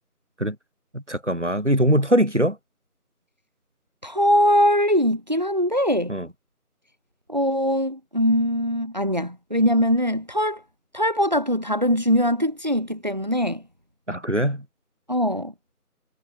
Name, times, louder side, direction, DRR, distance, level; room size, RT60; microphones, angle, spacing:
voice 1, 0.9-2.6 6.1-6.3 14.1-14.7, equal, 50° right, 4.1 m, -22 dB
voice 2, 4.0-6.1 7.3-10.6 10.9-13.6 15.1-15.5, equal, 30° right, 6.2 m, -21 dB
figure-of-eight pair, 180°, 46 cm